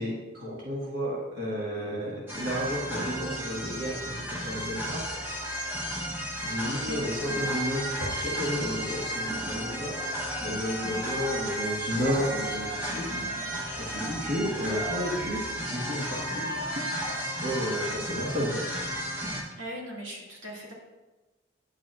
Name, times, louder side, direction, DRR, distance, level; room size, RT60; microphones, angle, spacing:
voice 1, 0.0-5.0 5.6-5.8 6.4-9.9 10.4-13.1 13.8-16.5 17.4-18.8, equal, 50° right, -6 dB, 1.7 m, -32 dB
sound 1, 2.3-19.4, equal, 10° right, 1.0 m, -33 dB
voice 2, 19.5-20.7, equal, 80° right, -4 dB, 2.2 m, -40 dB
9.7 x 7.4 x 2.5 m, 1.1 s
head